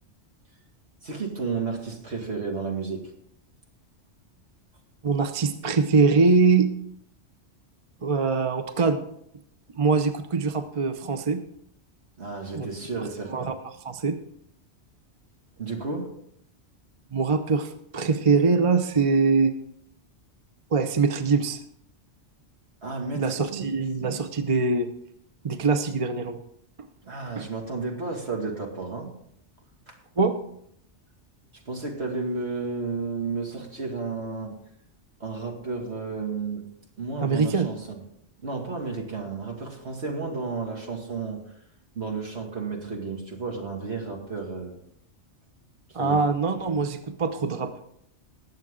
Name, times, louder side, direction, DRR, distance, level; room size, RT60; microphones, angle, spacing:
voice 1, 1.0-3.1 12.2-13.5 15.6-16.1 22.8-23.8 27.0-29.1 29.9-30.0 31.7-34.5 35.2-36.6 37.0-38.0 38.4-41.4 41.9-44.8 46.0-46.2, right 4 dB, 65° right, 1 dB, 2.5 m, -32 dB
voice 2, 5.0-6.8 8.0-9.0 9.8-11.4 12.5-12.7 13.3-13.5 13.8-14.2 17.1-19.5 20.7-21.6 23.1-24.9 25.4-26.4 27.4-27.5 30.2-30.4 37.2-37.7 45.9-47.7, right 4 dB, 35° right, 9 dB, 0.7 m, -23 dB
19.5 x 7.6 x 3.8 m, 0.72 s
omnidirectional pair, 1.2 m